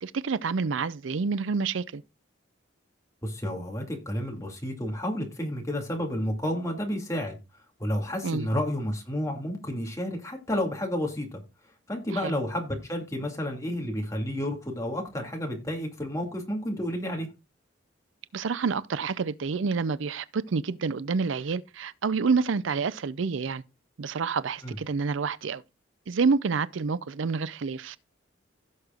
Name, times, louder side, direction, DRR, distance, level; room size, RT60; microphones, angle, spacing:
voice 1, 0.0-2.0 8.2-8.5 12.1-12.4 18.3-23.6 24.0-25.6 26.1-28.0, right 5 dB, 75° right, 0.5 m, -28 dB
voice 2, 3.2-7.4 7.8-11.4 11.9-17.3 24.6-24.8, equal, 15° left, 2.4 m, -31 dB
16.0 x 6.6 x 2.4 m
head